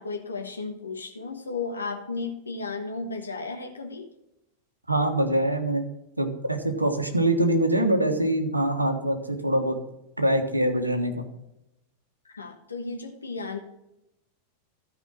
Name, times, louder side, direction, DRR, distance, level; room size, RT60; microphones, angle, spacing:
voice 1, 0.0-4.1 12.2-13.6, left 4 dB, 75° left, 4 dB, 1.2 m, -34 dB
voice 2, 4.9-5.9 6.2-9.8 10.2-11.2, right 1 dB, 85° right, 6 dB, 1.3 m, -24 dB
13.0 x 5.1 x 6.3 m, 0.87 s
figure-of-eight pair, 90°, 0 cm